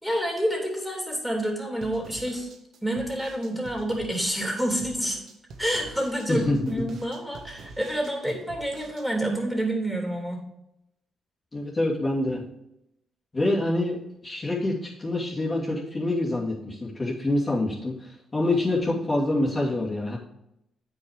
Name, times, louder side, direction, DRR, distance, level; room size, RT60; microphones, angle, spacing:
voice 1, 0.0-2.5 2.8-5.2 5.6-10.4, right 1 dB, ahead, 0 dB, 3.2 m, -28 dB
sound 1, 1.8-9.1, right 4 dB, 70° right, 1.3 m, -46 dB
voice 2, 6.3-6.8 11.5-12.4 13.3-14.0 14.2-20.2, left 2 dB, 30° left, -6 dB, 2.6 m, -26 dB
8.5 x 5.4 x 5.0 m, 0.83 s
cardioid pair, 70°, 0 cm